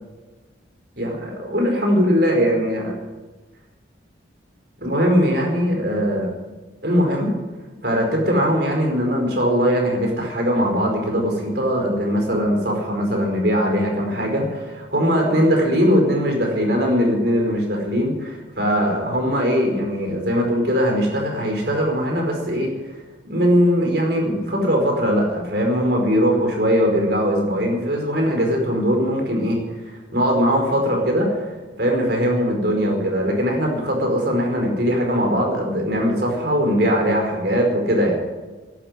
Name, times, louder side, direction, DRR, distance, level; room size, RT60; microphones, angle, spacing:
voice 1, 1.0-2.9 4.8-6.3 6.8-7.3 7.8-22.7 23.3-29.6 30.1-38.2, equal, 55° right, 1 dB, 4.8 m, -20 dB
12.0 x 12.0 x 9.8 m, 1.2 s
head